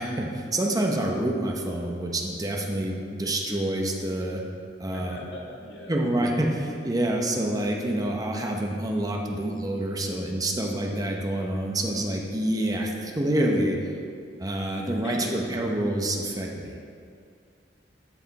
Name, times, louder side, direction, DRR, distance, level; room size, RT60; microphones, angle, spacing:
voice 1, 0.0-4.4 4.8-5.2 5.9-13.9 14.4-16.8, right 1 dB, 20° right, 0 dB, 0.8 m, -27 dB
voice 2, 4.9-5.9 15.0-15.4, left 2 dB, 80° left, -3 dB, 1.7 m, -38 dB
13.5 x 4.9 x 4.1 m, 2.3 s
head